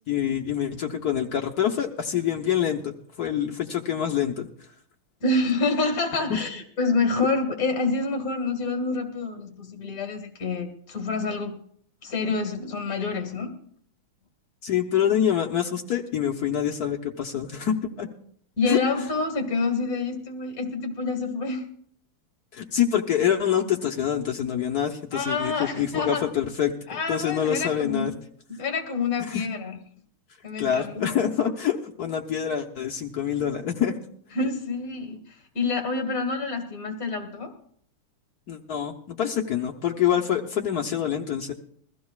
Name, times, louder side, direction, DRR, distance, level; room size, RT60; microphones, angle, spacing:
voice 1, 0.1-4.5 14.6-18.1 18.7-18.8 22.5-28.1 29.3-29.4 30.6-34.0 38.5-41.5, left 9 dB, 55° left, 1 dB, 1.1 m, -26 dB
voice 2, 5.2-11.6 12.0-13.6 18.6-21.6 25.1-26.3 26.9-28.1 28.6-29.8 30.4-31.0 34.3-37.5, left 3 dB, 40° left, 3 dB, 2.3 m, -27 dB
22.0 x 14.5 x 2.4 m, 0.63 s
omnidirectional pair, 2.4 m